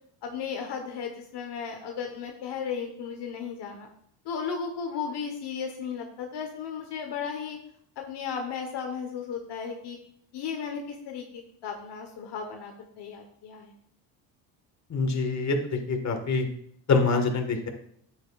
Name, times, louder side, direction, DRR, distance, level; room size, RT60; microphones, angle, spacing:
voice 1, 0.2-3.9 4.2-7.6 8.0-10.0 10.3-13.7, left 6 dB, 60° left, 2 dB, 1.4 m, -35 dB
voice 2, 14.9-16.5 16.9-17.7, left 4 dB, 35° left, 4 dB, 1.8 m, -25 dB
10.5 x 8.0 x 2.5 m, 0.67 s
supercardioid pair, 85°, 45 cm